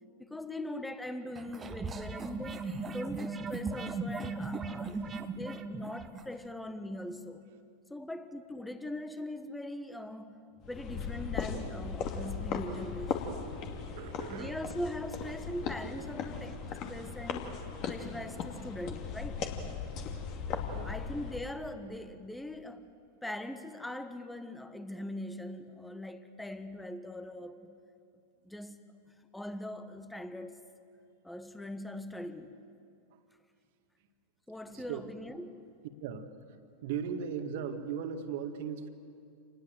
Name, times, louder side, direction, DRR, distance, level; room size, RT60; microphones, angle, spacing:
voice 1, 0.2-2.6 2.9-7.4 7.9-10.4 10.7-13.3 14.3-16.6 16.9-17.5 17.9-19.5 20.8-22.9 23.2-27.8 28.4-28.8 29.3-30.6 31.2-32.6 34.5-35.6, left 1 dB, 5° left, 1.4 m, -41 dB
sound 1, 1.4-6.3, right 3 dB, 20° right, 1.5 m, -38 dB
sound 2, 10.6-21.5, left 6 dB, 35° left, 2.5 m, -38 dB
voice 2, 13.9-14.6 20.7-20.9 33.1-33.2 34.7-35.1 36.0-36.3 36.8-38.9, right 7 dB, 50° right, 1.9 m, -38 dB
28.5 x 20.0 x 7.8 m
figure-of-eight pair, 90°, 0 cm